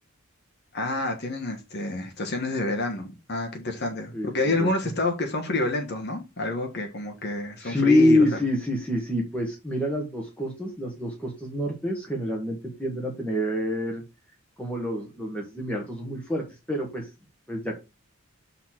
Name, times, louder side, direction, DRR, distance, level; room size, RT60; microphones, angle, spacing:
voice 1, 0.7-8.4, left 2 dB, 50° left, 1.3 m, -28 dB
voice 2, 4.1-4.7 7.6-14.0 14.6-17.1 17.5-17.8, left 1 dB, 5° left, 1.3 m, -26 dB
6.2 x 4.1 x 5.8 m
head